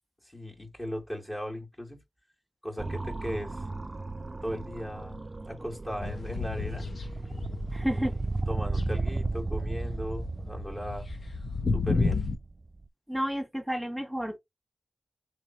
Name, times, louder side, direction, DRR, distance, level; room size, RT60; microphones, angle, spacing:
voice 1, 0.2-2.0 2.6-3.7 4.4-5.2 5.5-6.9 7.9-8.2 8.5-11.1 11.7-12.3, equal, 25° left, 1.7 m, -37 dB
sound 1, 2.8-12.9, right 3 dB, 35° right, 0.4 m, -35 dB
sound 2, 6.0-8.3 8.6-12.3, left 3 dB, 70° left, 0.8 m, -32 dB
voice 2, 7.7-8.1 13.1-14.4, equal, 5° right, 1.5 m, -31 dB
3.3 x 3.0 x 4.1 m
wide cardioid pair, 65°, 0 cm